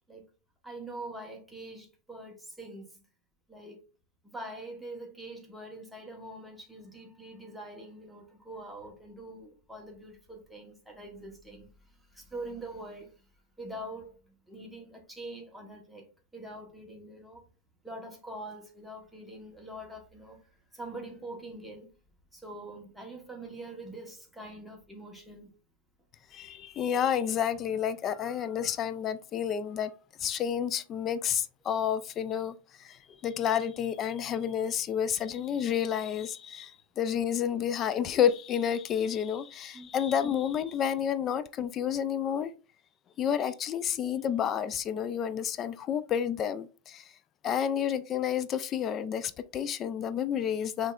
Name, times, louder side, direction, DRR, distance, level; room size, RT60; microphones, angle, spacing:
voice 1, 0.6-3.0 3.5-3.8 4.2-13.1 13.6-17.4 17.8-20.5 20.7-21.9 22.3-25.5 39.7-39.9, right 1 dB, ahead, 1.1 m, -44 dB
voice 2, 26.3-29.9 30.2-32.5 32.8-42.5 43.2-47.1 47.4-50.9, left 9 dB, 30° left, 0.4 m, -30 dB
5.4 x 3.2 x 2.4 m
supercardioid pair, 140°, 0 cm